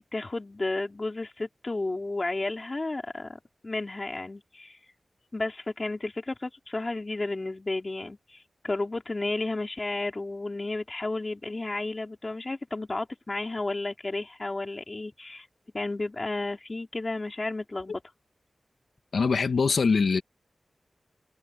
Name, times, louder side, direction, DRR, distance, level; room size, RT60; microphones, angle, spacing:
voice 1, 0.1-4.8 5.3-15.5 15.7-18.0, left 2 dB, 35° left, 4.1 m, -32 dB
voice 2, 19.1-20.2, left 5 dB, 85° left, 1.8 m, -23 dB
wide cardioid pair, 70°, 0 cm